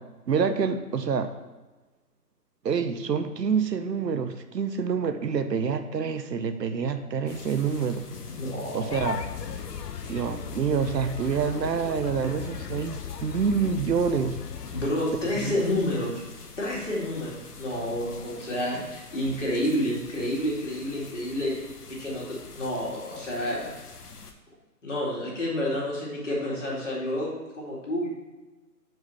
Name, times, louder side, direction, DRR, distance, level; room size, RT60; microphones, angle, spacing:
voice 1, 0.3-1.3 2.6-8.1 8.7-9.2 10.1-14.4 15.4-15.6, right 6 dB, 85° right, 9 dB, 0.8 m, -27 dB
sound 1, 7.3-24.3, left 4 dB, 70° left, 0.9 m, -44 dB
voice 2, 8.4-9.1 14.7-16.2 16.6-21.6 21.9-23.7 24.8-28.1, left 1 dB, 45° left, -4 dB, 2.1 m, -29 dB
sound 2, 8.9-14.9, left 8 dB, 85° left, 0.6 m, -37 dB
4.8 x 4.8 x 5.4 m, 1.2 s
hypercardioid pair, 175°, 48 cm